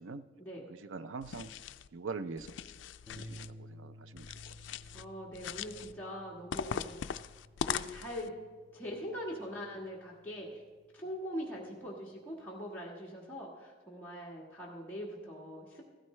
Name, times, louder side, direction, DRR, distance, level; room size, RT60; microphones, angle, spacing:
voice 1, 0.4-0.7 4.9-7.2 7.6-8.3 8.7-10.6 10.9-15.9, equal, 10° left, -6 dB, 1.5 m, -42 dB
voice 2, 0.9-1.5 1.9-2.5 3.2-4.3, right 4 dB, 90° right, 13 dB, 0.5 m, -42 dB
sound 1, 1.2-1.9 2.4-3.5 4.2-5.0 5.3-5.9 6.5-8.3, left 8 dB, 75° left, 0.3 m, -40 dB
sound 2, 3.1-11.5, equal, 20° right, 1.6 m, -55 dB
15.5 x 14.0 x 3.2 m, 1.4 s
head